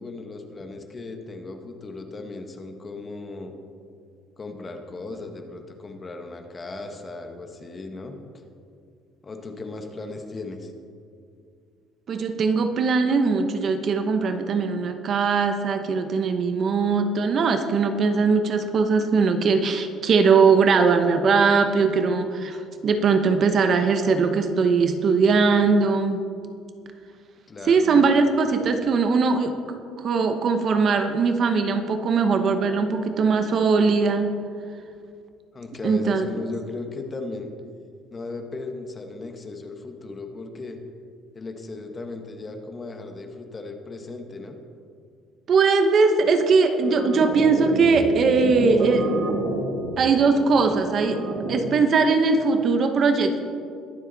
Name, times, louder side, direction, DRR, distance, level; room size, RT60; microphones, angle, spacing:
voice 1, 0.0-3.5 4.4-8.2 9.2-10.7 27.5-28.1 35.5-37.5 38.1-40.8 41.3-44.6, left 3 dB, 25° left, 5 dB, 1.2 m, -36 dB
voice 2, 12.1-26.2 27.7-29.5 30.0-34.3 35.8-36.3 45.5-49.1 50.0-51.2 51.5-53.4, right 4 dB, 40° right, 7 dB, 0.9 m, -20 dB
sound 1, 46.8-51.8, right 2 dB, 65° right, 2.4 m, -29 dB
22.0 x 7.3 x 4.0 m, 2.3 s
cardioid pair, 145°, 0 cm